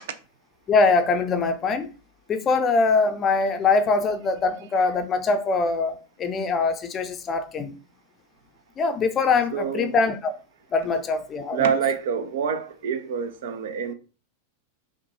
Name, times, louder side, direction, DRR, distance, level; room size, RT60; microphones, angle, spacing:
voice 1, 0.7-1.9 2.3-7.7 8.8-10.3 10.7-11.7, left 4 dB, 25° left, 0.5 m, -23 dB
voice 2, 9.5-10.0 11.5-13.9, right 7 dB, 55° right, 0.4 m, -26 dB
5.7 x 2.2 x 2.7 m
figure-of-eight pair, 90°, 0 cm